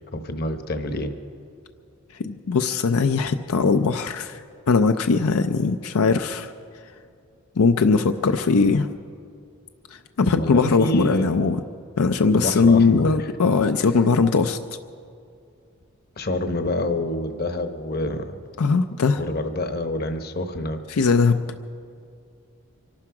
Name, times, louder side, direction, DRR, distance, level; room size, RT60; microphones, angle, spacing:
voice 1, 0.1-1.1 10.3-11.4 12.3-13.3 16.2-18.4 19.2-20.8, left 1 dB, 45° left, 8 dB, 1.0 m, -27 dB
voice 2, 2.2-4.4 4.7-6.5 7.6-8.9 10.2-11.6 12.0-14.6 18.6-19.2 20.9-21.5, left 4 dB, 85° left, 8 dB, 0.5 m, -20 dB
24.5 x 12.0 x 4.8 m, 2.5 s
head